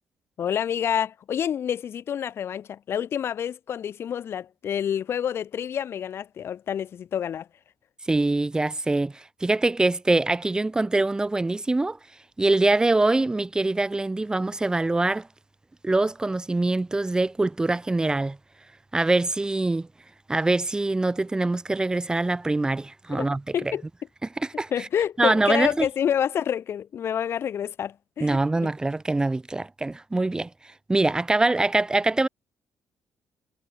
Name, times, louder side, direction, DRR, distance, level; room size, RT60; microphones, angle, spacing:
voice 1, 0.4-7.5 23.2-23.3 23.5-23.8 24.7-28.7, left 9 dB, 55° left, 2.4 m, -28 dB
voice 2, 8.1-12.0 12.4-15.3 15.8-18.4 18.9-19.9 20.3-23.7 24.4-24.9 25.2-25.9 28.2-32.3, right 2 dB, 15° right, 2.0 m, -24 dB
cardioid pair, 105°, 5 cm